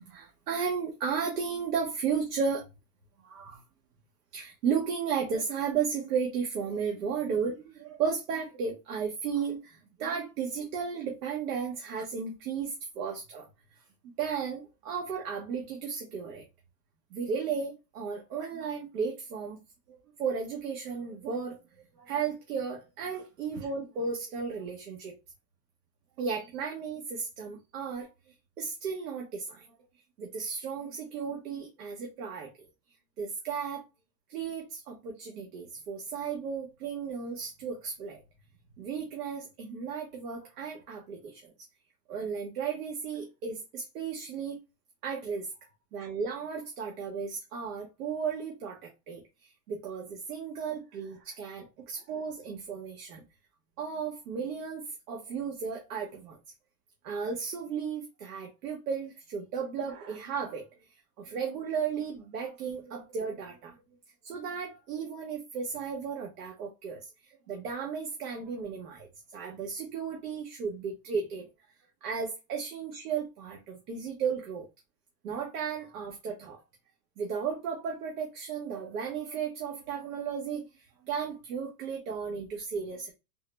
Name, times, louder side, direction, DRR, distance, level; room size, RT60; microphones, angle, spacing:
voice 1, 0.0-2.7 3.2-3.6 4.3-13.5 14.2-16.4 17.1-19.6 19.9-21.6 22.0-25.1 26.2-28.1 28.6-29.6 30.2-32.5 33.2-33.8 34.3-38.2 38.8-41.5 42.1-44.6 45.0-45.5 45.9-53.2 53.8-56.4 57.0-60.6 61.2-63.7 64.2-71.5 72.0-74.7 75.2-76.6 77.2-83.1, right 6 dB, 70° right, 1.0 m, -34 dB
3.7 x 2.1 x 3.2 m
hypercardioid pair, 135°, 48 cm